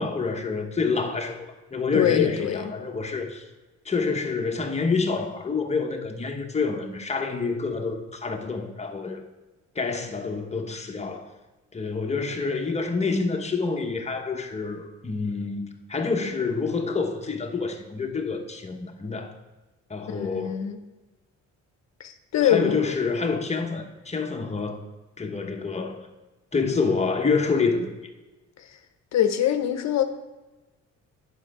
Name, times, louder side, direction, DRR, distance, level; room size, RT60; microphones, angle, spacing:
voice 1, 0.0-3.4 3.8-9.2 9.7-11.3 11.7-19.3 19.9-20.7 22.4-24.8 25.2-26.1 26.5-27.9, left 4 dB, 20° left, 4 dB, 1.0 m, -27 dB
voice 2, 1.9-2.7 20.1-20.8 22.0-22.9 29.1-30.0, left 10 dB, 60° left, 8 dB, 0.8 m, -24 dB
8.2 x 6.1 x 4.8 m, 1.1 s
cardioid pair, 90°, 30 cm